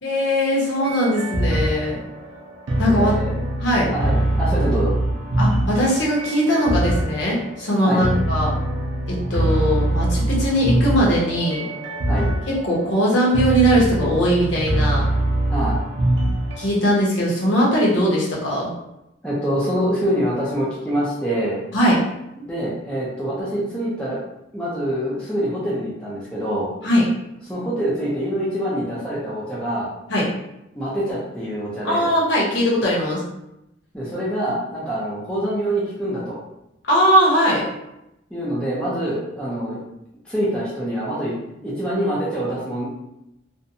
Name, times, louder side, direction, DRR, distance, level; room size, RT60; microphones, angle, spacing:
voice 1, 0.0-2.0 2.8-3.1 3.6-3.9 5.4-8.5 9.1-11.7 12.6-15.0 16.6-18.7 21.7-22.0 26.8-27.0 30.1-30.3 31.8-33.2 36.9-37.6, equal, 70° left, -5 dB, 0.9 m, -20 dB
sound 1, 0.8-16.7, right 1 dB, 80° right, 0.5 m, -23 dB
voice 2, 2.9-3.3 3.9-4.9 7.8-8.0 12.1-12.3 15.5-15.8 19.2-21.6 22.4-24.2 24.5-26.7 27.5-29.9 30.7-32.1 33.9-36.4 38.3-39.8 40.3-41.3 41.6-42.9, equal, 5° left, -8 dB, 0.5 m, -25 dB
2.6 x 2.1 x 2.6 m, 0.87 s
head